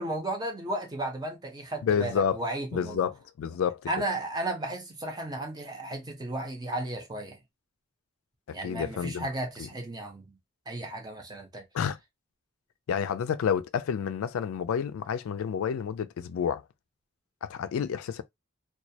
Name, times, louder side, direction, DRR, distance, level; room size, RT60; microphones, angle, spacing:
voice 1, 0.0-3.1 3.9-7.4 8.5-10.4 10.7-11.6, right 1 dB, 20° right, 0.5 m, -34 dB
voice 2, 1.8-2.4 2.7-3.8 8.5-9.3 9.6-9.7 11.7-12.0 12.9-16.6 17.4-18.2, left 7 dB, 75° left, 0.3 m, -29 dB
2.3 x 2.0 x 2.7 m
head